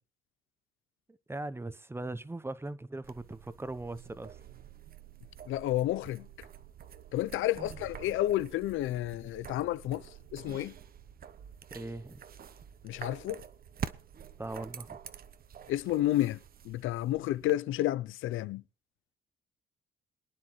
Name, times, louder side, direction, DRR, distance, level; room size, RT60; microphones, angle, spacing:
voice 1, 1.1-4.4 7.6-7.7 11.7-12.2 14.4-15.0, right 2 dB, 10° right, 0.8 m, -40 dB
sound 1, 3.0-17.5, right 8 dB, 50° right, 0.8 m, -47 dB
voice 2, 5.5-6.3 7.1-10.7 12.8-13.4 15.7-16.4 16.6-18.6, left 14 dB, 85° left, 0.5 m, -31 dB
23.0 x 9.7 x 3.1 m
cardioid pair, 90°, 20 cm